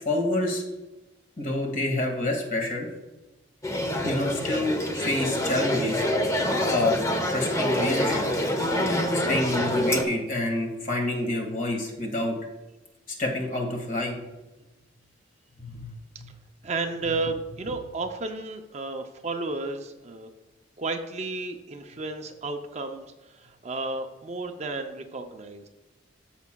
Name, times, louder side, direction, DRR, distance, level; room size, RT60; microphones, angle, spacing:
voice 1, 0.1-0.6 1.4-2.9 4.0-6.0 6.7-8.3 9.1-12.4 13.2-14.2 15.6-15.9, left 2 dB, 45° left, 1 dB, 1.8 m, -28 dB
sound 1, 3.6-10.0, left 1 dB, 15° left, 0.7 m, -26 dB
voice 2, 16.6-20.3 20.8-25.7, right 3 dB, 35° right, 5 dB, 0.5 m, -33 dB
14.0 x 6.0 x 2.3 m, 1.1 s
head